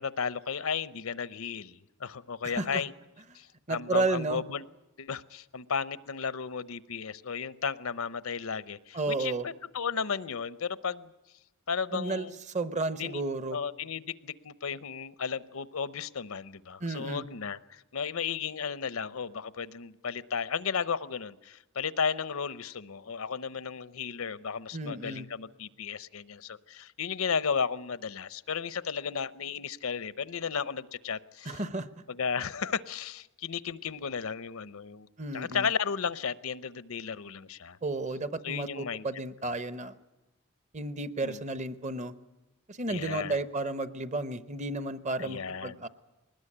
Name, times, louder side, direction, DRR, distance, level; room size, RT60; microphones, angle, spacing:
voice 1, 0.0-2.9 3.3-4.6 5.0-11.1 11.7-12.4 13.0-13.2 13.5-31.6 32.1-35.1 35.3-37.8 38.4-39.1 41.2-41.4 42.9-43.4 45.2-45.8, left 6 dB, 80° left, 16 dB, 0.8 m, -34 dB
voice 2, 2.4-2.8 3.7-4.4 8.9-9.5 11.9-13.6 16.8-17.2 24.7-25.3 31.5-31.9 35.2-35.7 37.8-39.9 40.7-42.1 42.7-45.9, right 2 dB, 35° right, 12 dB, 0.9 m, -32 dB
21.5 x 19.5 x 9.9 m, 0.98 s
head